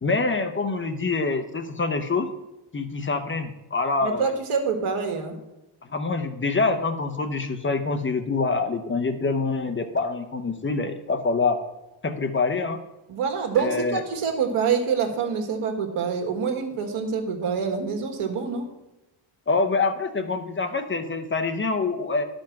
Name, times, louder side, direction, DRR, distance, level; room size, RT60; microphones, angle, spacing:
voice 1, 0.0-2.3 2.7-4.3 5.9-11.6 12.0-12.8 13.6-14.0 19.5-22.2, left 3 dB, 25° left, 6 dB, 0.7 m, -25 dB
voice 2, 4.0-5.4 13.1-18.6, right 6 dB, 85° right, 5 dB, 1.7 m, -26 dB
11.5 x 5.3 x 5.8 m, 0.97 s
wide cardioid pair, 160°, 49 cm